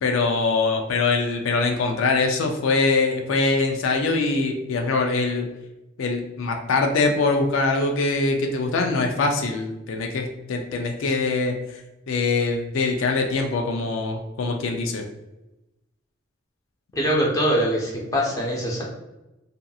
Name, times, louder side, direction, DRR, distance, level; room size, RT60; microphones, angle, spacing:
voice 1, 0.0-5.5 6.0-11.8 12.1-15.0, left 3 dB, 70° left, 3 dB, 0.4 m, -23 dB
voice 2, 16.9-18.8, equal, 15° left, -4 dB, 0.6 m, -23 dB
2.7 x 2.5 x 2.3 m, 0.96 s
head